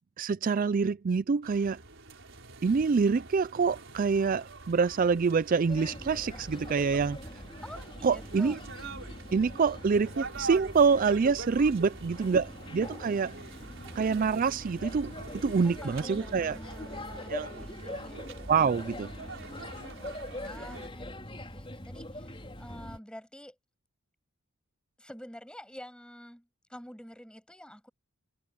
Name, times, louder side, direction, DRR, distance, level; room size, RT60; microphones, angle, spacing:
voice 1, 0.2-1.8 2.6-7.1 8.0-8.5 9.3-13.3 14.0-15.1 15.4-16.6 17.3-17.5 18.5-19.1, right 5 dB, 40° right, 0.4 m, -26 dB
sound 1, 1.4-20.9, right 3 dB, 60° right, 5.7 m, -45 dB
Male speech man speaking / Child speech kid speaking / Chatter, 5.7-23.0, left 1 dB, 25° left, 4.5 m, -43 dB
voice 2, 7.6-8.6 13.5-14.0 15.6-18.3 19.8-23.6 25.0-27.9, equal, 5° left, 7.6 m, -48 dB
head